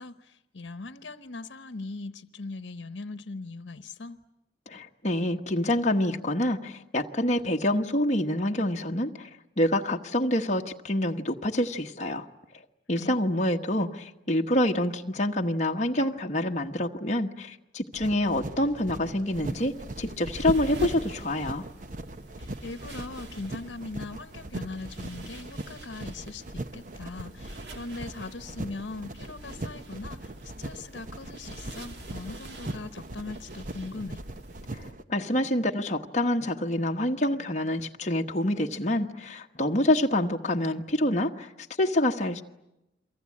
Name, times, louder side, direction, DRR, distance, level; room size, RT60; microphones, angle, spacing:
voice 1, 0.0-4.2 13.0-13.2 22.4-34.2, left 3 dB, 85° left, 10 dB, 1.0 m, -40 dB
voice 2, 4.7-9.3 9.6-12.3 12.9-21.6 34.7-41.5 41.8-42.4, left 1 dB, 40° left, 2 dB, 1.2 m, -27 dB
sound 1, 17.9-35.0, right 1 dB, 45° right, 0.9 m, -40 dB
sound 2, 19.3-34.9, right 1 dB, 70° right, 2.2 m, -45 dB
29.5 x 23.5 x 8.6 m, 0.92 s
head